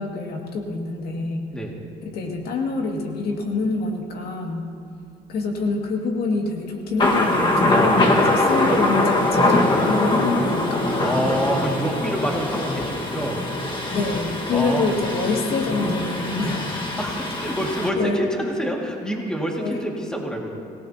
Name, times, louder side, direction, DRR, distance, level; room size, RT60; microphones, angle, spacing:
voice 1, 0.0-1.5 2.0-4.7 5.3-11.1 13.9-16.7 18.0-18.2 19.6-19.8, left 3 dB, 70° left, 0 dB, 2.3 m, -26 dB
Thunder, 7.0-17.9, left 2 dB, 30° left, 1.7 m, -22 dB
voice 2, 7.7-8.1 11.0-13.4 14.5-15.0 17.0-20.6, equal, 5° left, -1 dB, 2.2 m, -27 dB
25.0 x 17.5 x 2.9 m, 2.5 s
cardioid pair, 110°, 17 cm